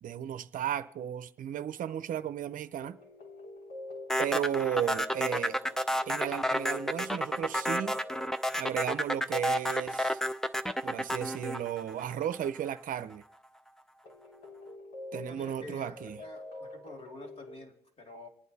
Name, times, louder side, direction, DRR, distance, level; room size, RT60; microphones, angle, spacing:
voice 1, 0.0-3.0 4.2-5.6 6.1-8.0 8.6-10.2 10.8-13.2 15.1-16.2, right 10 dB, 55° right, 0.7 m, -34 dB
sound 1, 2.8-8.8 14.0-17.6, left 2 dB, 75° left, 3.7 m, -46 dB
sound 2, 4.1-12.5, equal, 5° left, 0.5 m, -30 dB
voice 2, 15.3-18.3, left 2 dB, 35° left, 2.7 m, -48 dB
26.5 x 9.2 x 4.2 m
cardioid pair, 110°, 17 cm